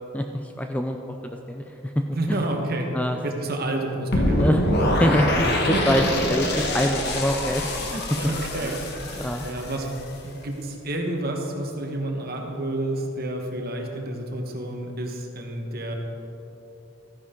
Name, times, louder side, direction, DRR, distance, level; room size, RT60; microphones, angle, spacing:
voice 1, 0.1-1.0 1.2-2.4 2.9-3.2 4.4-7.7 8.6-8.7 9.2-9.5, equal, 5° left, 4 dB, 0.4 m, -25 dB
voice 2, 2.1-2.9 3.2-4.6 5.7-6.1 7.9-8.8 9.1-9.9 10.2-15.9, right 1 dB, 45° right, 2 dB, 1.3 m, -29 dB
sound 1, 4.1-10.2, left 1 dB, 50° left, 1.3 m, -25 dB
13.5 x 9.8 x 3.8 m, 3.0 s
head